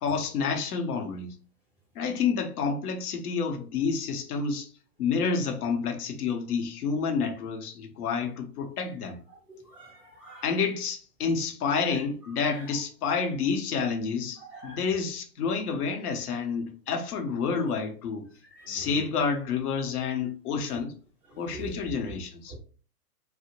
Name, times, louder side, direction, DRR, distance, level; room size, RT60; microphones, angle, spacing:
voice 1, 0.0-1.3 2.0-4.7 5.0-9.2 10.4-18.2 18.7-20.9 21.4-22.5, left 5 dB, 70° left, 0.8 m, -29 dB
voice 2, 9.5-10.5 11.8-12.0 12.4-12.6 14.4-14.8 18.5-18.9 21.3-21.7 22.5-22.6, right 3 dB, 5° right, 0.4 m, -45 dB
2.5 x 2.1 x 2.9 m
hypercardioid pair, 115°, 47 cm